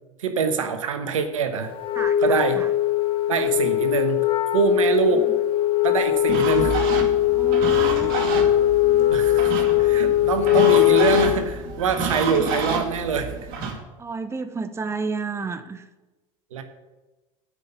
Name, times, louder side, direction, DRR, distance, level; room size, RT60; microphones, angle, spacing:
voice 1, 0.2-1.7 2.2-2.6 3.3-4.2 4.5-5.2 5.8-6.7 9.1-9.5 9.8-13.4 16.5-16.6, right 6 dB, 90° right, 8 dB, 1.1 m, -24 dB
Wind instrument woodwind instrument, 1.8-11.5, left 13 dB, 35° left, 0.4 m, -20 dB
voice 2, 1.9-2.7 5.1-5.3 7.4-8.3 14.0-15.9, right 4 dB, 15° right, 10 dB, 0.7 m, -32 dB
sound 1, 6.3-13.7, right 4 dB, 60° right, 2.1 m, -29 dB
8.3 x 5.7 x 8.0 m, 1.1 s
hypercardioid pair, 90°, 16 cm